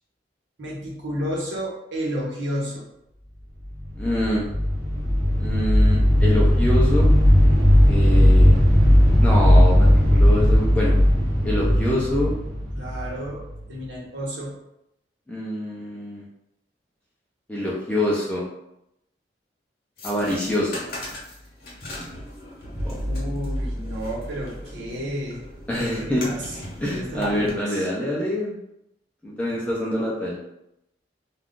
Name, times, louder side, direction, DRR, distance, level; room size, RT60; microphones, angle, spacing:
voice 1, 0.6-2.8 11.9-12.2 12.8-14.6 23.0-25.4 25.7-26.6 26.8-27.9, equal, 85° right, -4 dB, 1.0 m, -32 dB
sound 1, 3.8-13.6, equal, 55° right, 0.9 m, -17 dB
voice 2, 4.0-4.5 5.4-7.1 7.8-8.6 9.2-11.0 11.4-12.3 15.3-16.2 17.5-18.4 20.0-20.8 22.8-23.0 25.7-26.2 26.8-28.6 29.2-30.4, left 1 dB, 5° left, -5 dB, 0.5 m, -25 dB
sound 2, 20.0-27.5, equal, 55° left, 0.9 m, -34 dB
2.4 x 2.4 x 3.6 m, 0.83 s
head